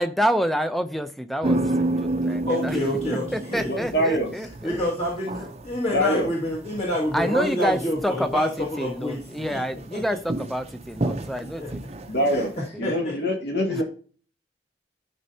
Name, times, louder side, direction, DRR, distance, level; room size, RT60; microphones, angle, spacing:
voice 1, 0.0-2.8 3.3-4.8 7.1-11.8 12.7-12.8 13.7-13.8, equal, ahead, 9 dB, 0.5 m, -27 dB
sound 1, 1.4-12.6, right 2 dB, 35° right, 0.6 m, -31 dB
voice 2, 2.5-4.0 4.4-9.2 9.5-9.6 9.9-10.0 11.4-11.7 12.3-13.2, left 1 dB, 35° left, -5 dB, 2.1 m, -28 dB
voice 3, 3.7-4.3 5.9-6.3 12.1-12.5 12.8-13.8, equal, 60° left, 0 dB, 2.5 m, -24 dB
12.5 x 5.4 x 2.8 m, 0.41 s
head